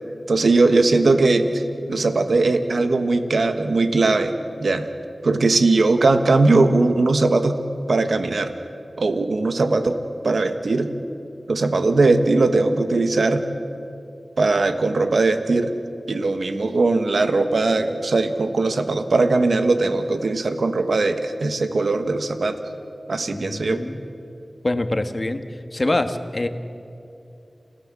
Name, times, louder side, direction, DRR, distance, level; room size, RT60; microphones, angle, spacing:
voice 1, 0.3-1.6 1.9-4.3 4.6-4.9 5.2-7.6 7.9-8.5 9.0-10.0 10.2-10.9 11.5-13.4 14.4-15.7 16.1-22.6 23.1-23.8, right 3 dB, 85° right, 8 dB, 1.3 m, -19 dB
voice 2, 23.3-24.0 24.6-25.4 25.7-26.5, left 2 dB, 45° left, 8 dB, 1.5 m, -24 dB
29.5 x 16.0 x 7.5 m, 2.8 s
wide cardioid pair, 45°, 0 cm